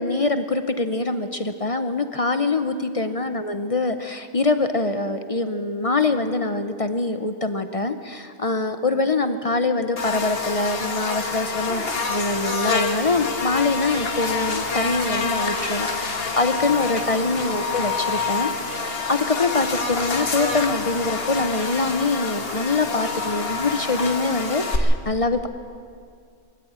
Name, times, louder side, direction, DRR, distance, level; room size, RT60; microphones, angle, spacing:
voice 1, 0.0-25.5, left 3 dB, 35° left, 9 dB, 0.8 m, -24 dB
Buzz, 10.0-24.8, left 4 dB, 65° left, 1.7 m, -27 dB
22.5 x 13.5 x 8.8 m, 2.3 s
omnidirectional pair, 1.1 m